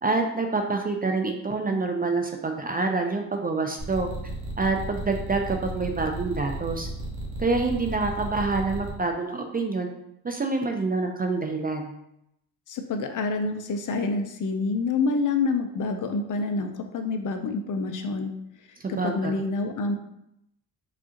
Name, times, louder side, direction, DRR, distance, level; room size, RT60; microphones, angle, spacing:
voice 1, 0.0-4.1 4.6-6.9 7.4-9.9 10.2-11.9 18.8-19.3, right 3 dB, 25° right, 3 dB, 0.4 m, -27 dB
sound 1, 3.8-8.9, right 1 dB, 50° right, 1.1 m, -34 dB
voice 2, 12.7-18.3 18.9-20.0, left 3 dB, 50° left, 6 dB, 0.5 m, -27 dB
4.9 x 2.4 x 2.8 m, 0.79 s
cardioid pair, 90°, 40 cm